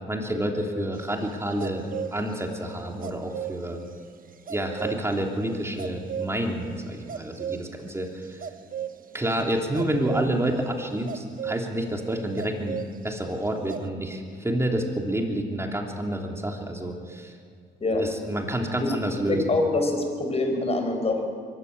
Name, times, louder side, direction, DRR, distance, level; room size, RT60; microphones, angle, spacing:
voice 1, 0.1-3.8 4.5-8.4 9.1-17.3 18.0-19.6, right 1 dB, 15° right, 1 dB, 3.3 m, -29 dB
sound 1, 0.9-2.4 3.0-3.6 4.5-5.1 5.8-6.6 6.9-7.7 8.2-9.0 9.7-10.3 11.1-11.6 12.4-13.2 13.5-13.8, right 9 dB, 45° right, 1.1 m, -34 dB
voice 2, 19.3-21.2, left 2 dB, 30° left, 4 dB, 4.6 m, -25 dB
23.0 x 13.5 x 8.8 m, 2.1 s
cardioid pair, 90°, 20 cm